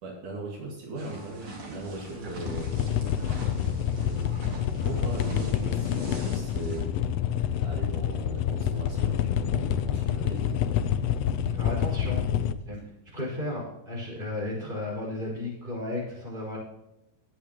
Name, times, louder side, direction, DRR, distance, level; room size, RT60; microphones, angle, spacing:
voice 1, 0.0-2.9 3.9-6.9 7.6-10.8, right 2 dB, 75° right, -1 dB, 3.5 m, -39 dB
sound 1, 1.0-6.8, right 2 dB, 45° right, 2.8 m, -43 dB
sound 2, 2.3-12.5, left 9 dB, 85° left, 1.4 m, -27 dB
voice 2, 11.5-12.2 12.7-12.8 13.1-16.6, left 1 dB, 15° right, -2 dB, 5.2 m, -34 dB
19.0 x 8.6 x 3.0 m, 0.87 s
omnidirectional pair, 3.6 m